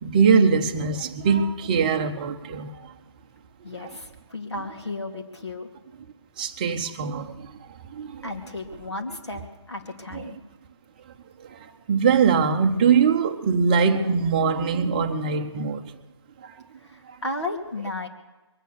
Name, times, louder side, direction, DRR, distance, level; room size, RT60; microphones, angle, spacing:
voice 1, 0.0-2.9 3.8-3.9 6.4-7.5 7.9-8.3 10.1-10.2 11.4-15.9 16.4-16.6, right 5 dB, 20° right, 0.7 m, -22 dB
voice 2, 3.6-5.7 8.2-10.4 16.8-18.1, left 2 dB, 70° left, 2.7 m, -34 dB
22.5 x 9.1 x 6.8 m
figure-of-eight pair, 155°, 15 cm